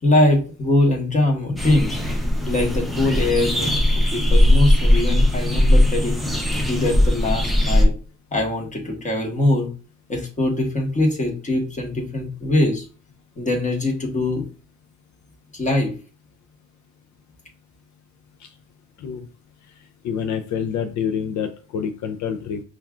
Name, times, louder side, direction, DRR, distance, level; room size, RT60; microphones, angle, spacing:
voice 1, 0.0-2.0 2.4-6.3 6.7-7.9 8.3-9.7 10.1-12.9 13.4-14.4 15.5-15.9, left 2 dB, 25° left, 0 dB, 1.2 m, -22 dB
sound 1, 1.6-7.8, left 1 dB, ahead, 0.7 m, -19 dB
voice 2, 20.0-22.6, left 7 dB, 70° left, 7 dB, 0.5 m, -27 dB
5.2 x 2.4 x 2.4 m, 0.37 s
cardioid pair, 90°, 30 cm